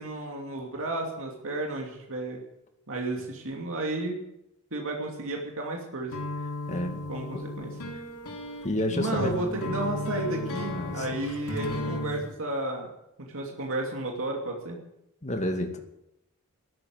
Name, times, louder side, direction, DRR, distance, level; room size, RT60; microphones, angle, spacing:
voice 1, 0.0-2.4 2.9-4.2 4.7-6.1 7.1-7.7 8.9-12.9 13.2-14.8, right 2 dB, 65° right, 0 dB, 2.8 m, -32 dB
sound 1, 6.1-12.2, left 2 dB, 85° left, 3.1 m, -34 dB
voice 2, 6.7-7.0 7.3-7.4 8.6-9.4 10.7-11.1 15.2-15.8, left 1 dB, 35° left, 4 dB, 2.1 m, -30 dB
13.5 x 13.0 x 8.0 m, 0.84 s
head